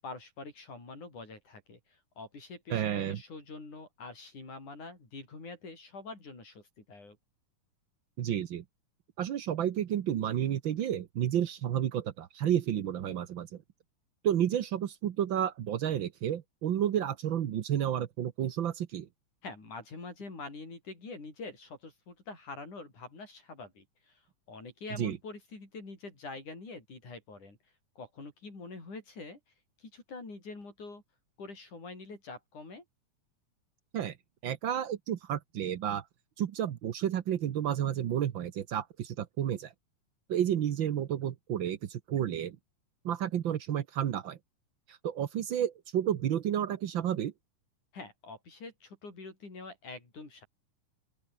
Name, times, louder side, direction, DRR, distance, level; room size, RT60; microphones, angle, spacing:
voice 1, 0.0-7.2 19.4-27.6 28.0-29.4 29.8-31.0 31.4-32.8 47.9-50.5, left 3 dB, 70° left, 9.4 m, -45 dB
voice 2, 2.7-3.2 8.2-8.6 9.2-13.5 14.2-19.1 25.0-25.2 33.9-34.2 34.4-36.0 36.4-39.7 40.3-42.6 43.0-44.4 44.9-47.3, right 10 dB, 70° right, 1.1 m, -31 dB
open air
omnidirectional pair, 3.6 m